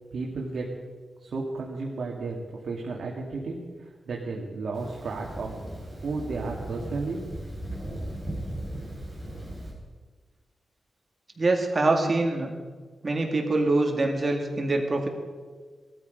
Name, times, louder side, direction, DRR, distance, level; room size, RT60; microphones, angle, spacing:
voice 1, 0.1-0.7 1.2-2.4 2.6-5.5 6.0-7.4, right 3 dB, 65° right, -2 dB, 2.1 m, -33 dB
Thunder, 4.7-9.7, right 1 dB, 5° left, 4.6 m, -37 dB
voice 2, 11.4-12.5 13.0-15.1, right 2 dB, 30° right, 2 dB, 2.2 m, -24 dB
19.0 x 13.5 x 5.2 m, 1.5 s
wide cardioid pair, 155°, 0 cm